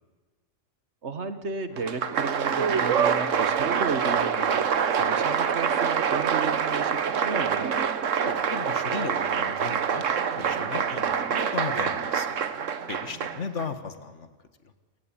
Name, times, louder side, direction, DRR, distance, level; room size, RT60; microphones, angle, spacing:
voice 1, 1.0-7.0 7.2-7.7, right 4 dB, 60° right, 10 dB, 1.8 m, -33 dB
Applause, 1.8-13.7, right 7 dB, 80° right, 1.4 m, -26 dB
voice 2, 8.2-10.0 10.3-12.3 12.9-14.3, left 5 dB, 70° left, 10 dB, 1.9 m, -36 dB
29.0 x 17.5 x 9.0 m, 1.3 s
omnidirectional pair, 1.3 m